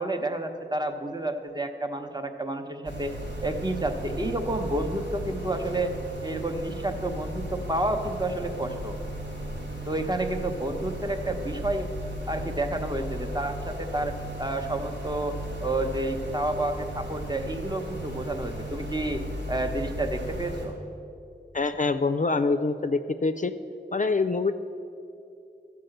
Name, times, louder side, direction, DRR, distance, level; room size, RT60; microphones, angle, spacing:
voice 1, 0.0-3.1 3.4-5.9 6.2-9.0 9.9-11.9 12.3-19.2 19.5-20.7, right 2 dB, 20° right, 5 dB, 0.9 m, -30 dB
sound 1, 2.8-20.7, equal, 75° right, 2.8 m, -36 dB
voice 2, 21.5-23.5 23.9-24.5, left 3 dB, 45° left, 9 dB, 0.4 m, -25 dB
13.0 x 4.8 x 7.8 m, 2.7 s
wide cardioid pair, 45°, 19 cm